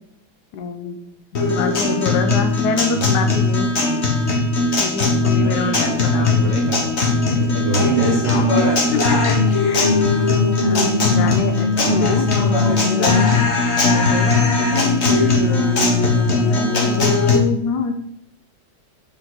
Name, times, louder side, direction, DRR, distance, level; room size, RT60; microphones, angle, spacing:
voice 1, 0.5-1.0 1.5-3.8 4.8-6.6 7.2-7.7 9.1-9.9 10.5-13.3 13.7-15.9 16.3-17.9, left 5 dB, 65° left, 6 dB, 1.3 m, -26 dB
Guitar, 1.3-17.4, left 3 dB, 40° left, 1.3 m, -18 dB
voice 2, 5.3-6.9 7.2-9.0 15.1-15.4, right 1 dB, 45° right, -2 dB, 1.2 m, -23 dB
7.0 x 5.6 x 4.0 m, 0.74 s
omnidirectional pair, 2.2 m